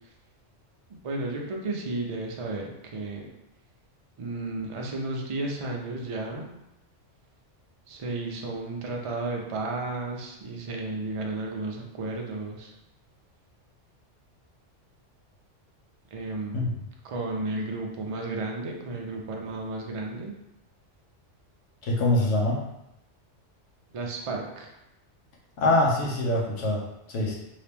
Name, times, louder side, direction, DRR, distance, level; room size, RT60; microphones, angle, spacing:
voice 1, 1.0-3.3 4.2-6.5 7.9-12.7 16.1-16.6 17.0-20.3 23.9-24.7, right 2 dB, 55° right, 0 dB, 0.3 m, -33 dB
voice 2, 21.8-22.7 25.6-27.4, left 1 dB, 80° left, -3 dB, 1.1 m, -24 dB
2.9 x 2.8 x 3.4 m, 0.86 s
omnidirectional pair, 1.3 m